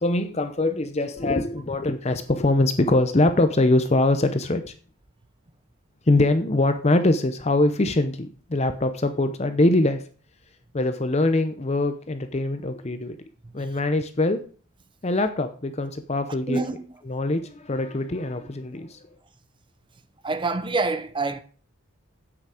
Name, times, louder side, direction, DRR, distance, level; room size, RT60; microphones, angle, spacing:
voice 1, 0.0-4.7 6.1-10.0 10.7-13.2 13.5-14.4 15.0-16.6 17.1-19.1, left 2 dB, 30° left, 0.7 m, -23 dB
voice 2, 13.4-13.8 16.5-16.8 20.2-21.4, right 3 dB, 25° right, 0.7 m, -27 dB
9.7 x 8.3 x 5.0 m
head